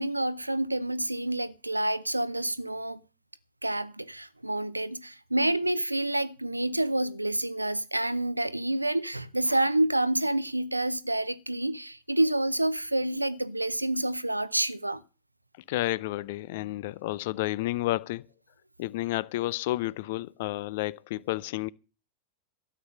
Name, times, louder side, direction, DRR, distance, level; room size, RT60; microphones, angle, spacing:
voice 1, 0.0-3.0 3.6-15.0, right 1 dB, 85° right, 0.7 m, -28 dB
voice 2, 15.7-18.2 18.8-21.7, left 17 dB, 50° left, 0.6 m, -31 dB
13.0 x 9.0 x 6.5 m
figure-of-eight pair, 90°, 0 cm